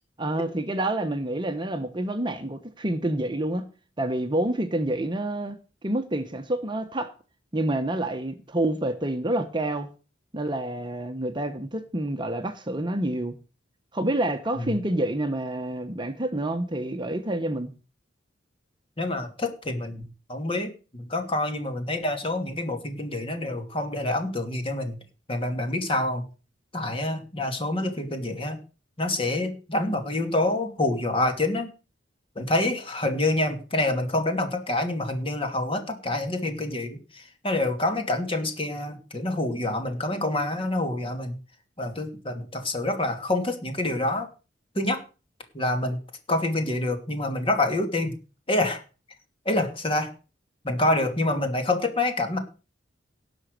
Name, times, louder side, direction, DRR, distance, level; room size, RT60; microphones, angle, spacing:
voice 1, 0.2-3.7 4.0-7.1 7.5-9.9 10.3-13.4 13.9-17.7, right 1 dB, 25° right, 1.0 m, -28 dB
voice 2, 19.0-20.0 20.3-25.0 25.3-26.3 26.7-28.6 29.0-31.7 32.4-41.4 41.8-44.3 44.7-45.0 45.5-46.0 46.3-48.1 48.5-48.8 49.4-50.1 50.6-52.4, left 2 dB, 30° left, 2.5 m, -27 dB
17.5 x 6.1 x 6.7 m
head